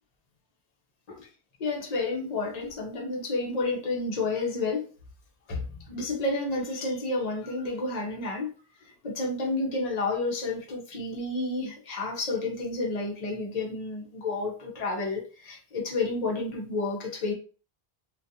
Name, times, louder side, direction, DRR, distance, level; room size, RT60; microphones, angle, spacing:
voice 1, 1.6-4.9 5.5-8.5 8.8-17.3, left 3 dB, 45° left, 0.7 m, -30 dB
2.4 x 2.3 x 2.6 m
omnidirectional pair, 1.0 m